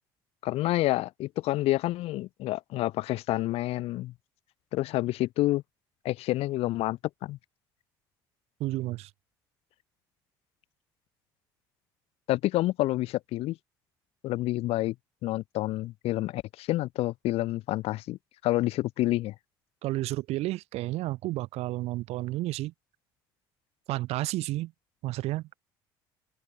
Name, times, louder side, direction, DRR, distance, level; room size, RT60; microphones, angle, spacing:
voice 1, 0.4-4.1 4.7-5.6 6.0-7.4 12.3-13.6 14.2-14.9 15.2-19.3, left 17 dB, 60° left, 0.4 m, -28 dB
voice 2, 8.6-9.1 19.8-22.7 23.9-24.7 25.0-25.5, right 17 dB, 65° right, 1.1 m, -31 dB
hypercardioid pair, 65°, 11 cm